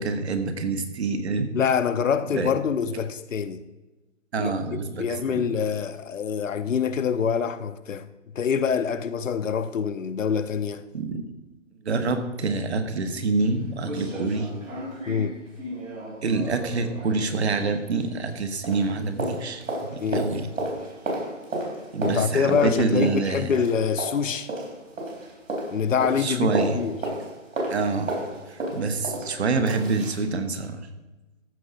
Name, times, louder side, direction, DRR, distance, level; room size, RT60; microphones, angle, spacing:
voice 1, 0.0-1.6 2.3-2.5 4.3-5.1 5.3-5.4 10.9-11.3 11.8-14.5 16.2-20.5 21.9-23.5 26.2-26.8 27.7-28.2 28.5-30.9, right 3 dB, 55° right, 1.3 m, -26 dB
voice 2, 1.5-3.6 4.4-8.1 8.3-10.8 15.1-15.4 20.0-20.3 22.0-24.5 25.7-27.0, left 7 dB, 75° left, 0.8 m, -25 dB
sound 1, 13.0-13.1 13.4-13.5 13.8-18.4 18.6-30.2 30.6-30.7, right 1 dB, 80° right, 4.2 m, -33 dB
14.0 x 5.6 x 5.0 m
hypercardioid pair, 165°, 39 cm